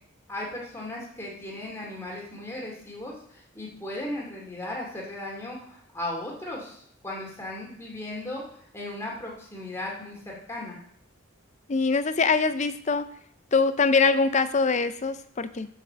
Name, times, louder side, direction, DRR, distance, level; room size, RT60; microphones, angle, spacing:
voice 1, 0.3-8.4 8.7-10.8, left 1 dB, 15° left, -3 dB, 2.4 m, -36 dB
voice 2, 11.7-13.1 13.5-15.7, left 4 dB, 35° left, 12 dB, 0.5 m, -23 dB
7.5 x 6.5 x 6.7 m, 0.64 s
head